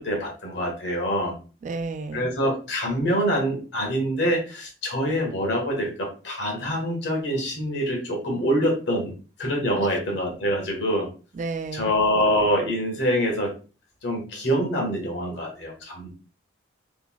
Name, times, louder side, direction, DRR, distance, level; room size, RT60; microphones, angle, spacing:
voice 1, 0.0-1.4 2.1-9.1 9.4-11.1 11.7-13.5 14.0-16.1, equal, 60° left, 1.4 m, -25 dB
voice 2, 1.6-2.3 9.8-9.9 11.3-11.9, right 3 dB, 40° right, 0.3 m, -32 dB
3.8 x 3.5 x 2.3 m
head